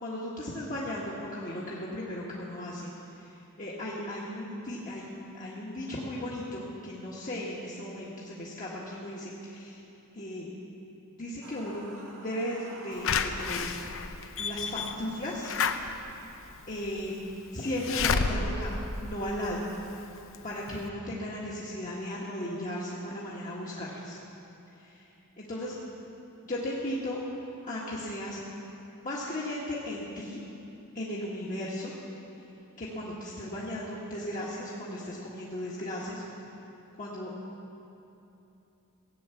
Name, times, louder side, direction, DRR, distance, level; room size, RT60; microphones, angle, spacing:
voice 1, 0.0-9.8 10.1-10.5 11.1-11.8 12.2-13.7 14.4-15.5 16.7-17.2 17.5-18.7 19.0-19.6 20.4-24.2 24.7-25.1 25.4-25.8 26.4-27.2 27.6-28.4 29.0-30.4 30.9-31.9 32.8-36.2 37.0-37.3, left 1 dB, 40° left, -6 dB, 1.6 m, -36 dB
sound 1, 11.4-13.6, right 1 dB, 70° right, 1.9 m, -48 dB
Slam / Alarm, 13.0-19.9 20.3-20.4 20.7-20.8, left 5 dB, 65° left, 0.7 m, -31 dB
17.0 x 8.8 x 7.1 m, 2.9 s
head